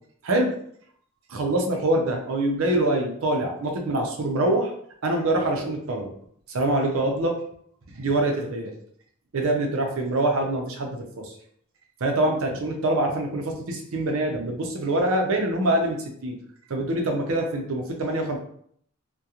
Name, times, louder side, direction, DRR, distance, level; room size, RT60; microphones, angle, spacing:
voice 1, 1.3-4.7 5.0-6.1 6.5-7.4 8.0-8.7 9.3-11.3 12.0-16.0 16.2-16.4 16.7-18.4, right 1 dB, 65° right, 2 dB, 0.5 m, -24 dB
2.4 x 2.1 x 2.8 m, 0.65 s
head